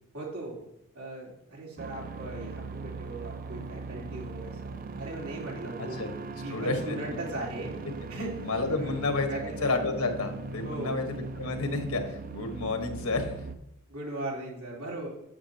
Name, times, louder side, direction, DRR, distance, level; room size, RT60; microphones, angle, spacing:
voice 1, 0.1-0.6 0.9-6.0 6.4-7.7 8.1-9.0 9.3-9.6 10.6-11.0 13.9-15.1, right 2 dB, 85° right, -3 dB, 3.5 m, -38 dB
sound 1, 1.8-13.5, right 3 dB, 45° right, 0.6 m, -39 dB
voice 2, 5.8-6.1 6.5-6.9 8.4-9.3 9.6-11.0 11.4-13.3, left 3 dB, 85° left, 5 dB, 1.4 m, -30 dB
9.5 x 7.9 x 2.9 m, 0.82 s
head